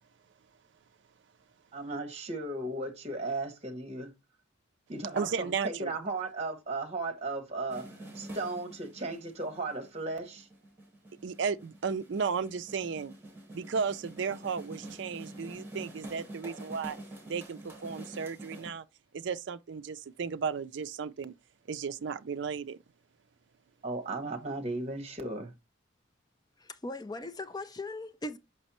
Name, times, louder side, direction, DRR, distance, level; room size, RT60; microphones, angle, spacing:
voice 1, 1.7-4.1 4.9-7.9 8.1-10.5 23.8-25.5, right 2 dB, 30° right, 1.3 m, -36 dB
voice 2, 5.1-5.9 11.2-13.1 13.5-17.0 17.3-18.8 19.1-21.3 21.7-22.8, right 6 dB, 65° right, 0.4 m, -34 dB
sound 1, 7.7-18.7, right 1 dB, 10° right, 2.3 m, -46 dB
voice 3, 26.6-28.4, left 2 dB, 20° left, 0.5 m, -39 dB
6.0 x 5.3 x 3.0 m
head